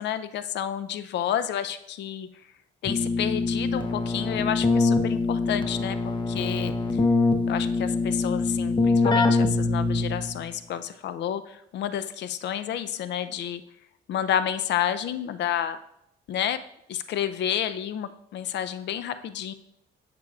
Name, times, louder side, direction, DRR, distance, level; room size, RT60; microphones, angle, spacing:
voice 1, 0.0-2.3 2.8-7.0 7.5-13.6 14.1-15.8 16.3-16.6 16.9-19.5, left 10 dB, 65° left, 12 dB, 0.5 m, -30 dB
Keyboard (musical), 2.8-10.4, left 3 dB, 25° left, 0.7 m, -24 dB
8.0 x 6.7 x 2.3 m, 0.78 s
cardioid pair, 90°, 20 cm